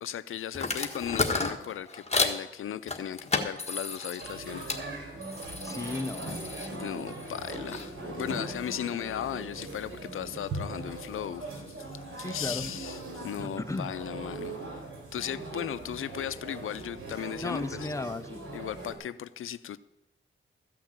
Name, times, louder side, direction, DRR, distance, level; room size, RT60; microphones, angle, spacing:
voice 1, 0.0-4.8 6.7-11.6 12.2-14.8 15.1-17.9 18.5-19.8, left 10 dB, 90° left, 0.5 m, -36 dB
sound 1, 0.5-2.4 2.9-4.8 5.2-7.9, left 3 dB, 30° left, 1.6 m, -33 dB
sound 2, 4.2-18.9, right 2 dB, 85° right, 3.4 m, -40 dB
voice 2, 5.6-6.4 12.2-12.6 13.4-13.9 17.4-18.4, left 2 dB, 15° left, 0.7 m, -35 dB
14.0 x 5.9 x 8.7 m
wide cardioid pair, 90°, 21 cm